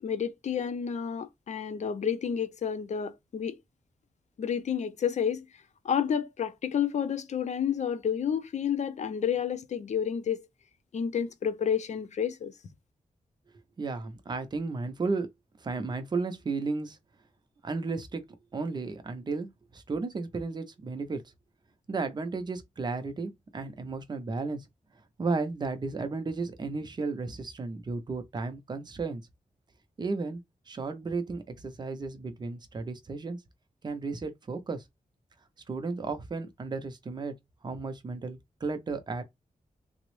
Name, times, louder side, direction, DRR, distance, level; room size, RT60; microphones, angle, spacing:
voice 1, 0.0-3.6 4.4-5.5 5.8-10.5 10.9-12.5, left 8 dB, 55° left, 0.4 m, -30 dB
voice 2, 13.8-15.3 15.6-17.0 17.6-18.2 18.5-19.5 19.7-21.2 21.9-24.7 25.2-29.2 30.0-30.4 30.7-33.4 33.8-34.8 35.7-37.3 37.6-39.2, right 3 dB, 30° right, 0.5 m, -33 dB
3.4 x 2.0 x 3.0 m
wide cardioid pair, 175°, 14 cm